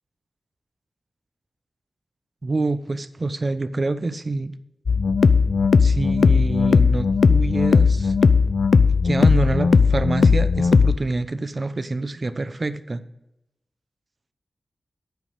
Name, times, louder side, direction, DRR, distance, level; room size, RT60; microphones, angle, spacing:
voice 1, 2.4-4.5 5.8-8.1 9.0-13.0, right 3 dB, 45° right, 13 dB, 0.7 m, -26 dB
sound 1, 4.9-11.0, left 5 dB, 70° left, 0.5 m, -17 dB
9.0 x 5.3 x 8.0 m, 0.89 s
wide cardioid pair, 80°, 0 cm